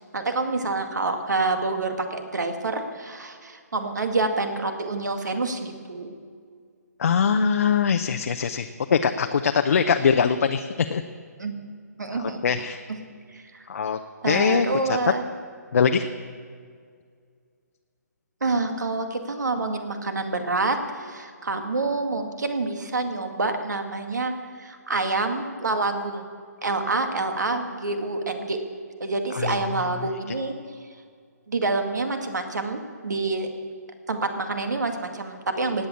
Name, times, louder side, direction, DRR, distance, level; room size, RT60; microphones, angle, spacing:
voice 1, 0.1-6.2 11.4-11.5 12.0-12.4 13.3-13.6 14.2-15.2 18.4-26.2 26.6-28.6 29.0-30.5 31.5-33.5 34.1-35.9, right 3 dB, 80° right, 6 dB, 2.2 m, -27 dB
voice 2, 7.0-11.0 12.1-12.8 13.7-14.0 14.2-15.1 15.7-16.1 29.3-29.9, left 6 dB, 60° left, 6 dB, 0.8 m, -22 dB
17.0 x 9.1 x 8.5 m, 2.1 s
hypercardioid pair, 155°, 9 cm